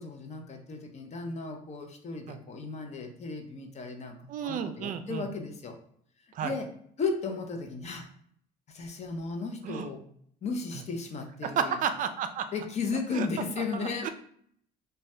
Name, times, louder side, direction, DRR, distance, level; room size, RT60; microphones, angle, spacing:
voice 1, 0.0-4.2 4.4-5.8 6.4-6.7 7.0-8.0 8.7-10.0 10.4-11.8 12.5-14.1, left 4 dB, 40° left, 4 dB, 0.6 m, -35 dB
voice 2, 4.3-5.3 6.4-6.5 9.6-9.9 11.4-12.5 13.1-13.3 14.0-14.1, right 7 dB, 50° right, 9 dB, 0.4 m, -31 dB
2.6 x 2.2 x 3.2 m, 0.64 s
cardioid pair, 110°, 17 cm